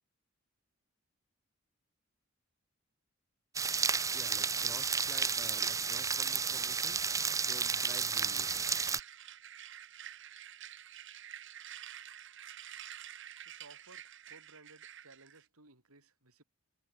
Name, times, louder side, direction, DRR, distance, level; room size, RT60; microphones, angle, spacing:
sound 1, 3.5-9.0, right 5 dB, 15° right, 0.5 m, -32 dB
voice 1, 4.1-7.1 7.4-8.8, equal, 5° left, 2.1 m, -52 dB
sound 2, 8.3-15.4, right 10 dB, 60° right, 3.4 m, -49 dB
voice 2, 13.5-16.4, right 3 dB, 85° right, 6.1 m, -59 dB
head